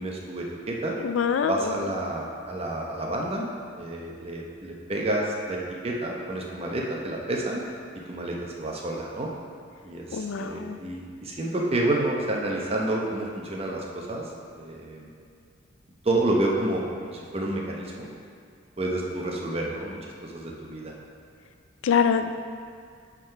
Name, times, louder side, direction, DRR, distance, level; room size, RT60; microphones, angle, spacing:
voice 1, 0.0-0.9 1.5-3.5 3.8-7.6 8.1-9.3 9.8-15.1 16.0-18.1 18.8-20.9, right 1 dB, 30° right, -1 dB, 0.8 m, -29 dB
voice 2, 1.0-1.7 10.1-10.8 21.8-22.3, left 6 dB, 90° left, 8 dB, 0.4 m, -24 dB
8.2 x 3.8 x 4.5 m, 2.2 s
head